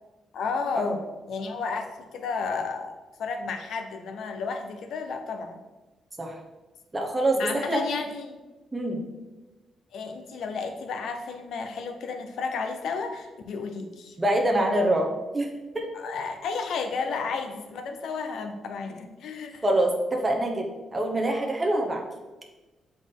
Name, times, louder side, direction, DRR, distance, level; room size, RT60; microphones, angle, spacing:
voice 1, 0.3-1.0 1.3-5.6 7.4-8.4 9.9-14.2 15.9-19.6, left 5 dB, 70° left, 6 dB, 0.7 m, -32 dB
voice 2, 6.9-7.8 8.7-9.1 14.2-15.5 15.7-15.9 19.6-20.7 20.9-22.0, right 1 dB, 15° right, 1 dB, 0.8 m, -25 dB
7.2 x 4.0 x 3.7 m, 1.2 s
cardioid pair, 150°, 0 cm